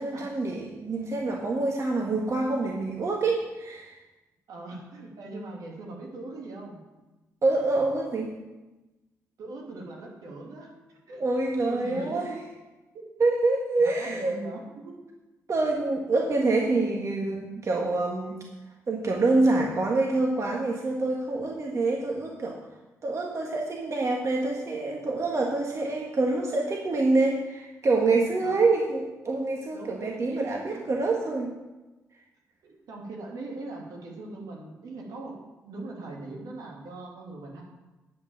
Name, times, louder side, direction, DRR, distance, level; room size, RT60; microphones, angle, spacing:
voice 1, 0.0-3.9 7.4-8.3 11.2-12.3 13.2-14.3 15.5-18.4 18.9-22.6 23.0-31.5, right 3 dB, 50° right, 0 dB, 1.7 m, -26 dB
voice 2, 4.5-6.8 9.4-11.2 11.7-12.5 13.8-14.9 28.4-28.6 29.7-30.9 32.6-35.4 35.6-37.6, right 2 dB, 75° right, -1 dB, 3.0 m, -40 dB
10.0 x 6.2 x 7.3 m, 1.1 s
supercardioid pair, 50°, 6 cm